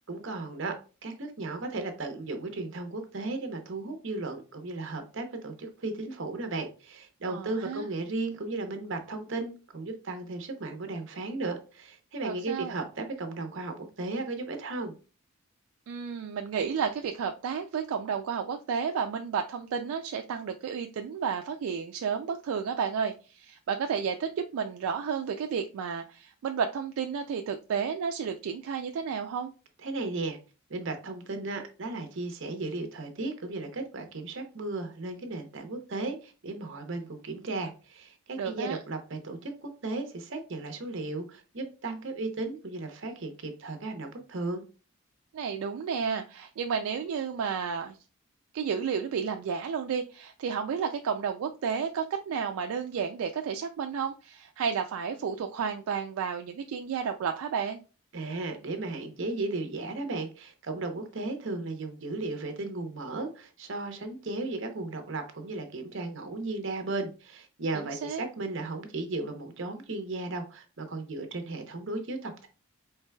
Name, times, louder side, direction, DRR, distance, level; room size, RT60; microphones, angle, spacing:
voice 1, 0.1-0.7 1.0-14.9 29.8-30.4 30.7-44.6 58.1-72.5, right 2 dB, 55° right, 6 dB, 0.7 m, -35 dB
voice 2, 7.3-7.9 12.2-12.7 15.9-29.5 38.4-38.8 45.3-48.0 48.5-57.8 67.9-68.2, right 6 dB, 75° right, 5 dB, 0.3 m, -32 dB
4.5 x 3.2 x 2.2 m, 0.34 s
head